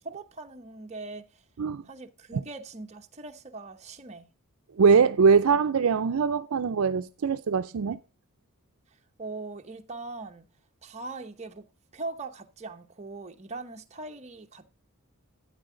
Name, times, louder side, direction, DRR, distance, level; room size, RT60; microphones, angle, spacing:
voice 1, 0.0-1.4 1.8-4.3 9.2-10.5 10.8-11.7 11.9-14.7, right 3 dB, 30° right, 0.9 m, -40 dB
voice 2, 4.8-8.0, right 5 dB, 65° right, 0.4 m, -22 dB
12.5 x 9.3 x 3.8 m
head